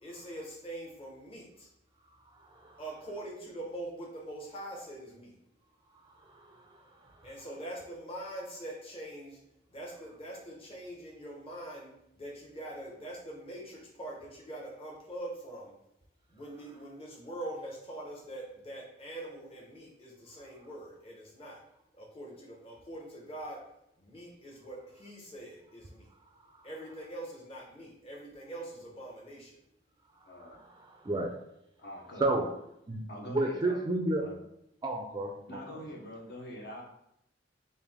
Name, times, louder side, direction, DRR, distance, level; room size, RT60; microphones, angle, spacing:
voice 1, 0.0-1.7 2.8-5.3 7.2-9.4 9.7-11.9 12.2-15.7 16.3-21.6 21.9-23.6 24.0-26.1 26.6-29.5, right 1 dB, 30° left, -3 dB, 0.9 m, -43 dB
voice 2, 2.5-2.8 6.2-6.6 7.1-7.2 30.6-31.3 32.2-32.4 32.9-34.3 34.8-35.6, right 2 dB, 20° right, 2 dB, 0.3 m, -32 dB
voice 3, 30.2-30.6 31.8-32.5 33.1-33.8 34.1-34.4 35.5-36.8, left 1 dB, 60° left, -2 dB, 0.9 m, -44 dB
3.4 x 2.6 x 3.5 m, 0.78 s
head